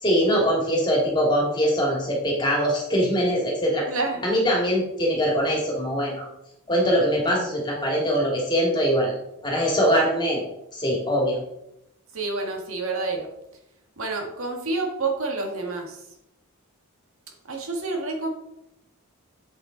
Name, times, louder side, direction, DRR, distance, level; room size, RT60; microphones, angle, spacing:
voice 1, 0.0-3.9 4.2-6.3 6.7-9.1 9.4-10.4 10.7-11.4, equal, 20° left, -2 dB, 2.3 m, -22 dB
voice 2, 3.9-4.2 12.1-13.3 14.0-16.0 17.5-18.3, right 3 dB, 70° right, 1 dB, 1.7 m, -28 dB
7.9 x 7.3 x 3.9 m, 0.82 s
head